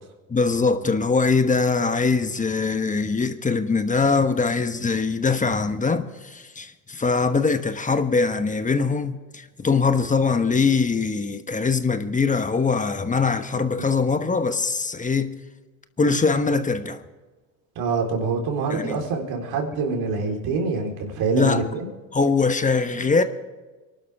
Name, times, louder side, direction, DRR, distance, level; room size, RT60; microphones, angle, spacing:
voice 1, 0.3-15.3 16.0-17.0 18.7-19.0 21.3-21.6 22.1-23.2, left 4 dB, 20° left, 1.2 m, -22 dB
voice 2, 17.8-21.9, right 4 dB, 65° right, 4.3 m, -25 dB
24.0 x 12.0 x 3.6 m
hypercardioid pair, 80°, 41 cm